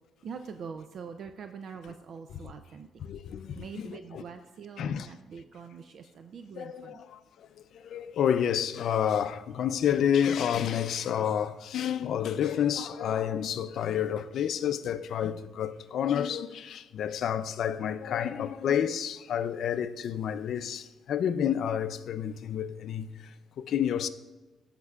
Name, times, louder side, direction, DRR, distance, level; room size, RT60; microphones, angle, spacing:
voice 1, 0.2-2.9 3.5-7.0, right 6 dB, 60° right, 0.4 m, -43 dB
voice 2, 3.0-4.2 4.8-5.1 6.5-24.1, left 9 dB, 70° left, 0.5 m, -30 dB
14.5 x 5.9 x 2.4 m
cardioid pair, 90°, 0 cm